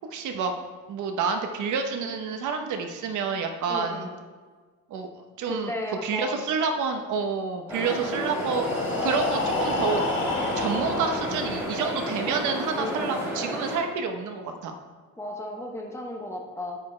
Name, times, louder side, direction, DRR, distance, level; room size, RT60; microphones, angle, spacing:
voice 1, 0.1-0.5 0.9-4.1 4.9-5.1 5.4-5.7 6.0-8.7 9.0-10.0 10.3-14.7, right 5 dB, 70° right, 5 dB, 1.0 m, -28 dB
voice 2, 3.7-4.2 5.5-6.5 7.7-8.1 12.7-13.1 15.2-16.8, left 1 dB, 10° left, 0 dB, 0.9 m, -35 dB
sound 1, 7.7-13.8, equal, 10° right, 3.0 m, -31 dB
Breathing, 8.1-12.0, left 2 dB, 40° left, 1.8 m, -30 dB
9.7 x 8.9 x 3.3 m, 1.5 s
cardioid pair, 160°, 31 cm